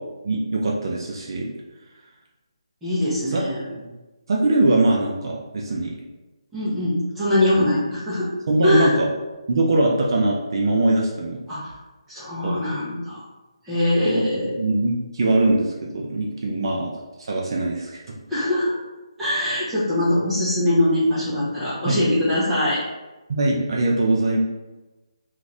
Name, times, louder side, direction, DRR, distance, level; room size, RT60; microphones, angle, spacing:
voice 1, 0.2-1.5 3.3-3.5 3.8-3.9 4.3-6.0 7.6-7.7 8.5-9.0 9.5-11.4 12.4-12.6 14.0-14.2 14.6-16.9 17.3-18.2 21.9-22.0 23.3-24.4, right 2 dB, 50° right, -2 dB, 0.4 m, -22 dB
voice 2, 2.8-3.6 6.5-8.3 8.6-9.0 11.5-11.7 12.1-13.2 13.6-14.5 16.6-16.7 18.3-18.7 19.2-22.8, left 1 dB, 5° right, -11 dB, 0.8 m, -22 dB
2.5 x 2.5 x 3.2 m, 1.1 s
hypercardioid pair, 165°, 3 cm